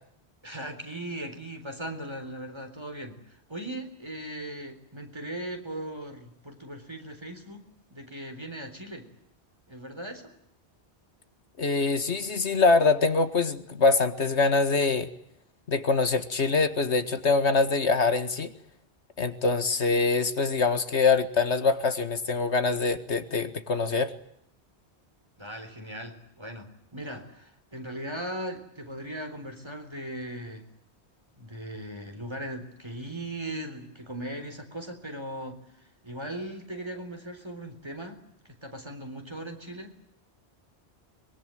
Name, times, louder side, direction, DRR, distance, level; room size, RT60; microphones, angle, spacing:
voice 1, 0.4-9.1 9.7-10.3 25.4-30.7 31.4-35.6 36.0-38.2 38.4-39.9, right 1 dB, 25° right, 6 dB, 4.1 m, -38 dB
voice 2, 11.6-15.1 15.7-18.5 19.2-24.1, left 4 dB, 90° left, 10 dB, 2.1 m, -24 dB
24.0 x 23.0 x 9.2 m, 0.72 s
omnidirectional pair, 1.1 m